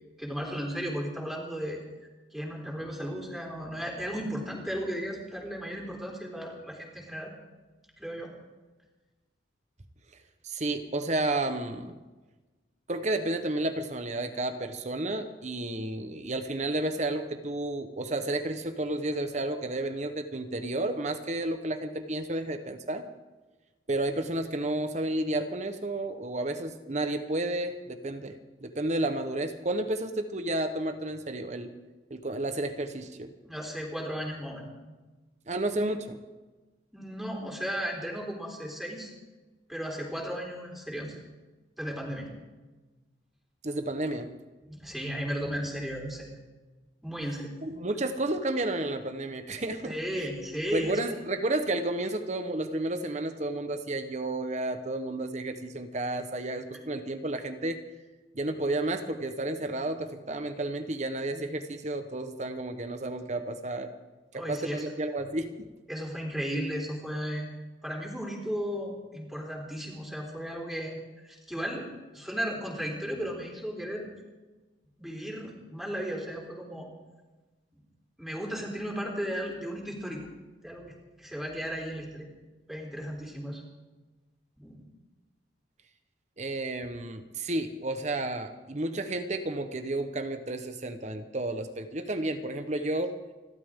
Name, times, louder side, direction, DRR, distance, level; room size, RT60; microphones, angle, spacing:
voice 1, 0.2-1.8 2.3-7.3 8.0-8.3 33.4-34.7 36.9-39.1 39.7-41.2 41.8-42.3 44.7-46.3 47.0-47.5 49.8-51.0 64.3-64.8 65.9-67.5 67.8-70.9 71.2-71.9 72.1-74.1 75.0-76.9 78.2-80.3 80.6-82.3 82.7-83.6 84.6-84.8, equal, ahead, -2 dB, 3.7 m, -35 dB
voice 2, 10.4-12.0 12.9-23.0 23.9-31.7 32.1-33.3 35.5-36.2 43.6-44.3 47.6-50.3 50.7-57.8 58.3-63.9 64.3-65.7 86.4-93.2, right 2 dB, 40° right, 8 dB, 1.0 m, -31 dB
29.0 x 12.5 x 3.7 m, 1.2 s
head